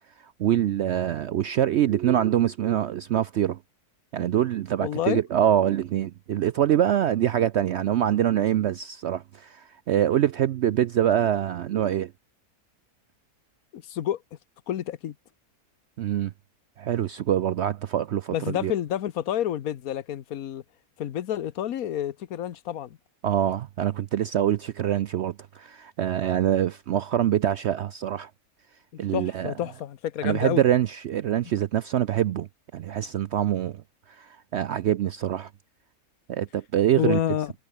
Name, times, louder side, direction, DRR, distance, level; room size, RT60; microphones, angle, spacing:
voice 1, 0.2-3.6 4.1-12.1 16.0-16.3 16.8-18.7 23.2-28.3 29.0-29.5 30.2-33.8 34.1-35.5 36.3-37.2, right 11 dB, 70° right, 0.6 m, -25 dB
voice 2, 4.8-5.2 13.7-14.2 14.7-15.1 18.3-20.6 21.0-23.0 29.1-30.6 37.0-37.5, left 11 dB, 65° left, 1.4 m, -29 dB
omnidirectional pair, 1.7 m